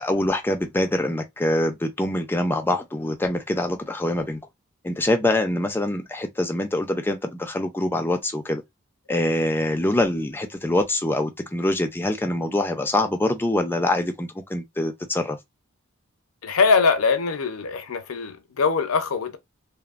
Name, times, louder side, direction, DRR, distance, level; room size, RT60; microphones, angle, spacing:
voice 1, 0.0-4.4 4.8-8.6 9.1-15.4, left 1 dB, 10° left, 0.4 m, -24 dB
voice 2, 16.4-19.4, left 5 dB, 90° left, 0.6 m, -22 dB
3.0 x 2.0 x 2.4 m
head